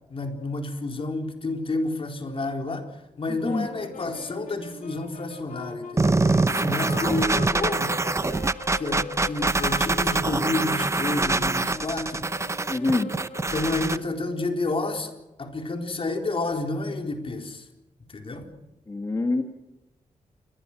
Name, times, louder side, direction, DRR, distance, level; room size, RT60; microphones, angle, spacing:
voice 1, 0.1-2.9 3.2-8.0 8.8-12.3 13.5-15.1 15.4-17.6 18.1-18.4, left 2 dB, 40° left, 3 dB, 4.2 m, -30 dB
voice 2, 3.3-3.7 12.7-13.1 18.9-19.4, left 2 dB, 25° left, 4 dB, 1.8 m, -26 dB
sound 1, 3.4-14.2, left 5 dB, 75° left, 4.2 m, -40 dB
sound 2, 6.0-14.0, right 3 dB, 20° right, 0.8 m, -24 dB
29.0 x 22.0 x 6.2 m, 0.96 s
wide cardioid pair, 150°, 14 cm